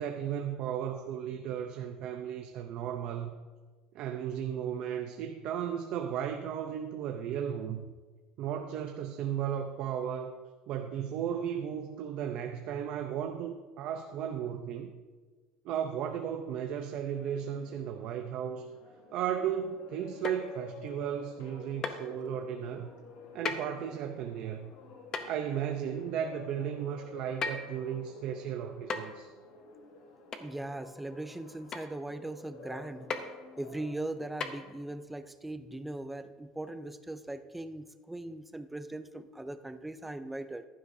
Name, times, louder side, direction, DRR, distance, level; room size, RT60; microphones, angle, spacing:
voice 1, 0.0-3.3 3.9-7.8 8.4-10.4 10.7-15.0 15.6-18.7 19.1-22.9 23.3-24.7 25.3-29.3, right 9 dB, 45° right, 5 dB, 0.6 m, -35 dB
sound 1, 16.6-33.9, left 4 dB, 70° left, 1.7 m, -52 dB
sound 2, 20.2-20.6 21.8-22.0 23.4-23.7 25.1-25.4 27.4-27.8 28.9-29.2 30.3-30.5 31.7-31.9 33.1-33.3 34.4-34.5, left 4 dB, 25° left, 0.7 m, -35 dB
voice 2, 30.4-33.1 33.6-40.7, right 2 dB, 5° right, 10 dB, 0.4 m, -40 dB
15.0 x 11.5 x 2.7 m, 1.4 s
cardioid pair, 175°, 2 cm